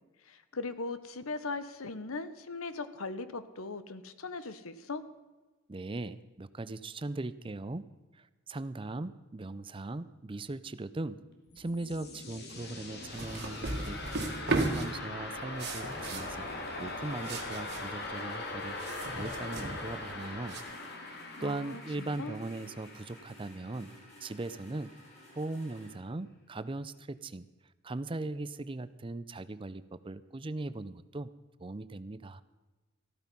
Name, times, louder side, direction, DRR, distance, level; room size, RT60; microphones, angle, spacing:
voice 1, 0.3-5.0 21.4-22.4, left 3 dB, 85° left, 13 dB, 1.0 m, -39 dB
voice 2, 5.7-7.9 8.1-11.2 11.6-14.0 14.5-16.4 16.8-18.8 19.1-20.6 21.0-23.9 24.2-24.9 25.4-27.4 27.8-31.3 31.6-32.4, right 2 dB, 25° right, 14 dB, 0.5 m, -39 dB
sound 1, 11.3-24.2, left 2 dB, 50° left, 2.5 m, -41 dB
sound 2, 13.1-20.6, right 2 dB, 55° right, 2.0 m, -36 dB
sound 3, 15.9-25.9, equal, 35° left, 4.4 m, -55 dB
14.5 x 13.5 x 5.4 m, 1.2 s
head